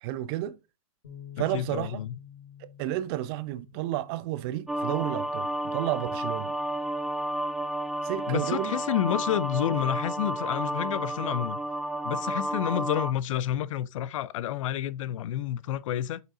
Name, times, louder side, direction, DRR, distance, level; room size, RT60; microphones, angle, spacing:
voice 1, 0.0-0.6 1.4-2.0 2.6-6.5 8.0-8.7, right 14 dB, 40° right, 0.6 m, -32 dB
sound 1, 1.0-7.3, left 9 dB, 85° left, 2.3 m, -51 dB
voice 2, 1.4-2.2 8.3-11.6 12.0-16.2, left 11 dB, 60° left, 0.5 m, -29 dB
sound 2, 4.7-13.1, right 1 dB, ahead, 0.4 m, -31 dB
6.6 x 4.6 x 3.8 m
hypercardioid pair, 125°, 19 cm